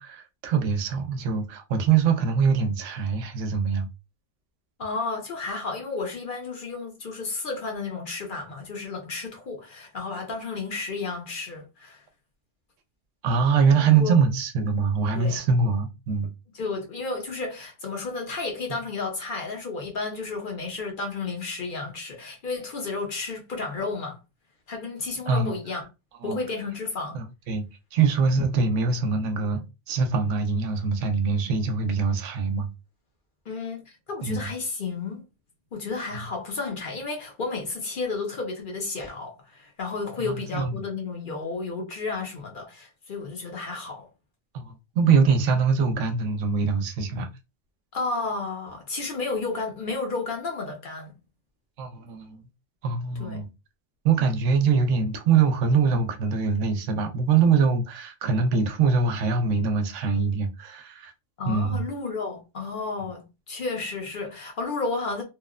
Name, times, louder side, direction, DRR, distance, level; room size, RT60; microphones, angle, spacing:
voice 1, 0.0-3.9 13.2-16.3 25.3-25.5 26.2-26.4 27.1-27.7 27.9-32.7 34.2-34.5 40.2-40.7 44.5-47.3 51.8-52.4 52.8-53.5 54.0-61.1 61.5-61.8, right 5 dB, 90° right, 0.9 m, -23 dB
voice 2, 4.8-12.0 13.7-14.2 15.1-15.4 16.5-24.2 24.7-25.9 26.2-27.2 33.5-35.2 35.7-44.1 47.9-51.1 53.2-53.4 61.4-65.2, left 3 dB, 50° left, 0.8 m, -32 dB
2.9 x 2.1 x 2.3 m
omnidirectional pair, 1.2 m